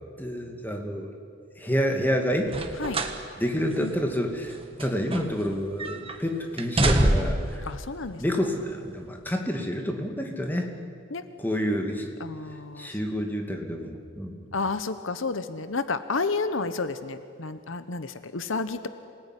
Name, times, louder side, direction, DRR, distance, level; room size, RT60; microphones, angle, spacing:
voice 1, 0.2-1.1 1.6-2.5 3.4-7.6 8.2-10.7 11.4-12.1 12.8-14.4, equal, 10° left, 2 dB, 2.4 m, -28 dB
sound 1, 2.4-3.2 3.6-3.7 4.5-5.5 5.8-6.2 6.6-7.5 8.4-8.5, right 1 dB, 25° right, 1.6 m, -25 dB
voice 2, 7.6-8.2 11.1-11.3 12.2-12.9 14.5-18.9, left 3 dB, 70° left, 11 dB, 1.0 m, -31 dB
27.0 x 19.0 x 10.0 m, 2.3 s
head